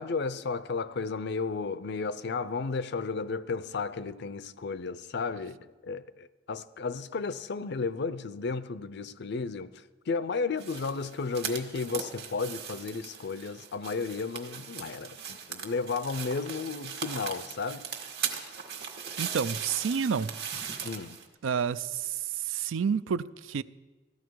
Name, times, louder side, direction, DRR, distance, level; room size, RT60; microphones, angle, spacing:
voice 1, 0.0-5.6 5.8-17.8 20.8-21.2, left 4 dB, 60° left, 0.5 m, -33 dB
sound 1, 10.6-21.3, right 7 dB, 60° right, 1.7 m, -39 dB
voice 2, 19.2-20.3 20.7-20.8 21.4-23.6, right 6 dB, 85° right, 0.4 m, -30 dB
15.5 x 13.0 x 4.7 m
head